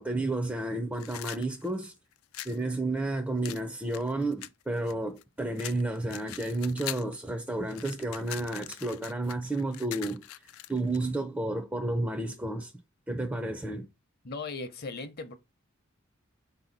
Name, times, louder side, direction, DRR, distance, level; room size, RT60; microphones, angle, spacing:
voice 1, 0.0-1.9 2.4-12.7 13.1-13.9, right 2 dB, 10° right, 0.4 m, -31 dB
sound 1, 0.9-2.6 3.4-5.2 5.6-7.2 7.5-11.0, left 14 dB, 90° left, 0.3 m, -42 dB
voice 2, 14.2-15.4, left 3 dB, 50° left, 0.7 m, -37 dB
4.5 x 2.7 x 3.9 m
head